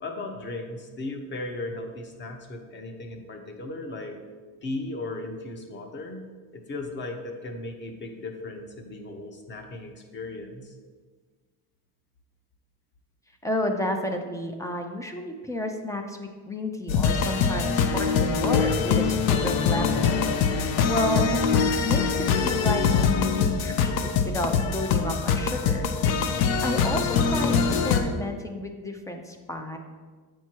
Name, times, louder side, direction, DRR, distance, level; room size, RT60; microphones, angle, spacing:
voice 1, 0.0-4.2 4.6-6.3 6.5-10.7, left 2 dB, 30° left, 4 dB, 0.8 m, -36 dB
voice 2, 13.4-22.0 22.4-25.9 26.6-29.8, left 1 dB, 10° left, 4 dB, 0.3 m, -31 dB
sound 1, 16.9-28.0, left 6 dB, 70° left, 0.7 m, -23 dB
8.2 x 4.5 x 4.4 m, 1.5 s
cardioid pair, 155°, 38 cm